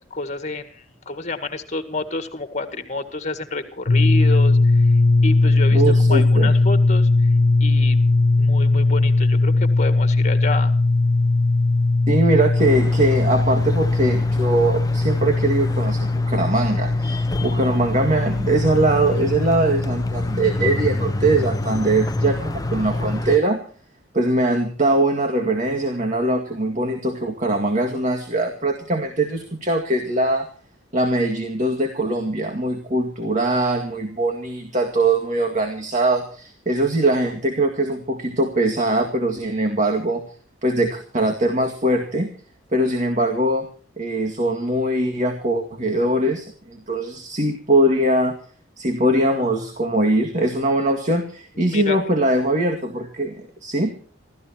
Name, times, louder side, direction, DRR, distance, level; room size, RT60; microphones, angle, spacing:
voice 1, 0.1-4.9 5.2-7.1 7.6-8.0 8.4-10.7 51.7-52.0, left 2 dB, 35° left, 9 dB, 2.0 m, -29 dB
sound 1, 3.9-23.2, left 2 dB, 70° left, 1.2 m, -19 dB
voice 2, 5.7-6.5 12.1-23.6 24.1-30.5 30.9-40.2 40.6-42.3 42.7-43.7 44.0-48.4 48.8-53.9, right 1 dB, 40° right, 3 dB, 2.1 m, -21 dB
sound 2, 12.6-23.4, left 1 dB, 20° left, 0.9 m, -30 dB
27.5 x 14.0 x 2.9 m, 0.43 s
head